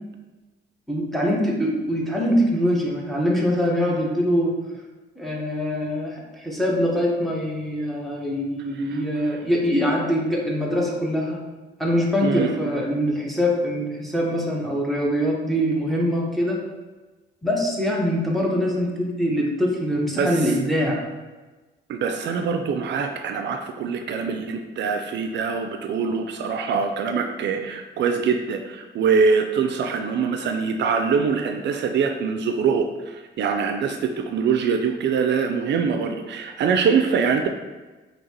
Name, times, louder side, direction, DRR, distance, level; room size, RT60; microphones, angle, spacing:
voice 1, 0.9-4.5 5.2-11.4 11.8-16.6 17.4-21.0, equal, ahead, -3 dB, 1.1 m, -23 dB
voice 2, 12.2-12.7 20.1-20.5 21.9-37.5, right 5 dB, 65° right, 5 dB, 0.4 m, -24 dB
5.2 x 2.9 x 2.9 m, 1.2 s
cardioid pair, 90°, 20 cm